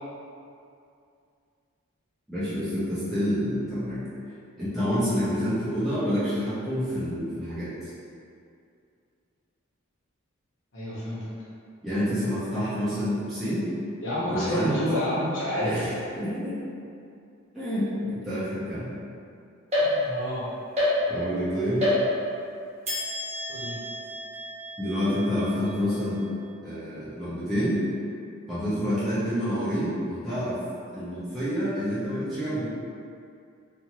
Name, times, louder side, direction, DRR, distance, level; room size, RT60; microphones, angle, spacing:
voice 1, 2.3-4.0 4.6-7.9 11.8-13.7 14.3-14.7 15.6-16.6 17.5-18.9 19.8-20.2 21.1-21.9 24.8-26.2 26.6-27.8 28.5-30.6 30.9-32.7, equal, ahead, -14 dB, 0.6 m, -28 dB
voice 2, 10.7-11.3 14.0-15.9 20.1-20.5 23.5-23.8, equal, 60° left, -9 dB, 0.9 m, -28 dB
sound 1, 19.7-20.4 20.8-21.4 21.8-22.5 22.9-26.3, left 1 dB, 30° right, 0.8 m, -29 dB
2.5 x 2.5 x 2.9 m, 2.5 s
head